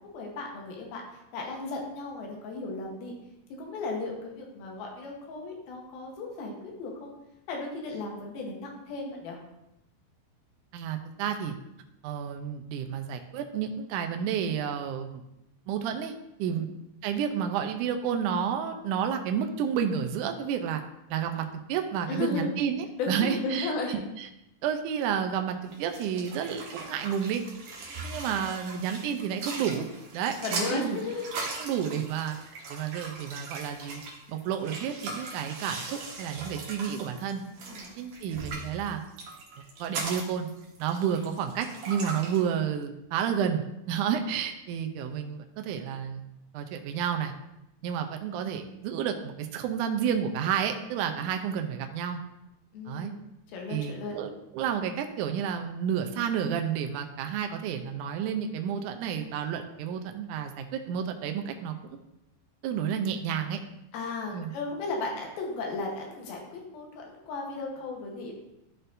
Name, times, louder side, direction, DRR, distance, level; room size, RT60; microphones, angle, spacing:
voice 1, 0.1-1.0 1.3-3.1 3.6-7.1 7.5-9.4 16.5-16.6 22.1-22.5 23.0-24.0 27.9-28.1 30.4-31.3 37.6-38.0 51.2-51.3 52.7-53.2 53.5-54.2 63.9-68.3, left 3 dB, 90° left, 0 dB, 3.0 m, -35 dB
voice 2, 10.7-11.6 12.0-15.2 15.7-16.1 16.4-16.7 17.0-20.8 21.1-24.3 24.6-27.4 28.0-29.9 30.1-31.0 31.6-32.4 32.7-34.0 34.3-37.4 38.0-39.0 39.8-40.5 40.8-46.2 46.5-47.3 47.8-52.2 52.9-53.1 53.7-62.0 62.6-63.6 64.3-64.5, right 8 dB, 80° right, 5 dB, 1.8 m, -31 dB
sound 1, 25.7-42.4, right 3 dB, 60° right, 2.1 m, -39 dB
12.5 x 4.3 x 2.6 m, 0.87 s
omnidirectional pair, 4.2 m